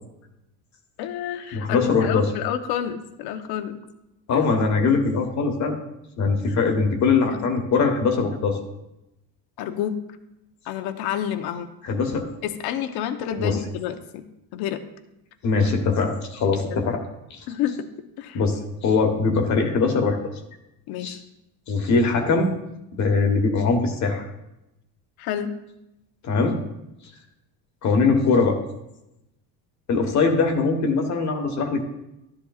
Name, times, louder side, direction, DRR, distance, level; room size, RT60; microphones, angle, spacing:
voice 1, 1.0-3.8 4.3-4.4 6.5-6.6 7.2-7.4 9.6-10.0 10.6-11.7 12.4-14.2 14.5-14.8 16.7-16.8 17.5-17.9 18.2-18.4 20.9-21.2 25.2-25.5, left 10 dB, 60° left, 8 dB, 0.9 m, -29 dB
voice 2, 1.5-2.3 4.3-5.7 6.2-8.6 11.8-12.3 13.4-13.6 15.4-17.0 17.3-17.4 18.3-20.2 21.0-21.2 21.7-22.5 23.0-24.2 26.2-26.6 27.8-28.6 29.9-31.8, left 4 dB, 40° left, 4 dB, 1.3 m, -21 dB
13.0 x 10.5 x 2.4 m, 0.90 s
cardioid pair, 145°, 43 cm